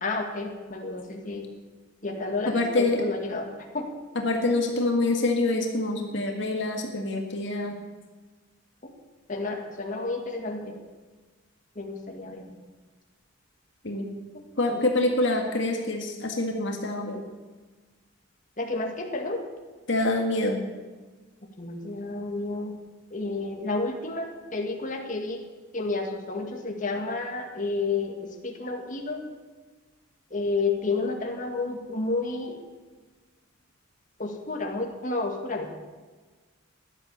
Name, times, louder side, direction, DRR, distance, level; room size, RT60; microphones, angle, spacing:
voice 1, 0.0-1.5 2.0-3.9 8.8-8.9 9.3-10.8 11.8-12.6 14.3-14.8 18.6-19.4 21.6-22.8 23.1-25.5 25.7-29.3 30.3-32.6 34.2-35.8, left 3 dB, 40° left, 2 dB, 2.0 m, -31 dB
voice 2, 2.5-3.0 4.2-7.8 13.8-14.1 14.6-17.2 19.9-20.6, left 2 dB, 60° left, 2 dB, 1.8 m, -26 dB
16.0 x 11.5 x 7.0 m, 1.3 s
head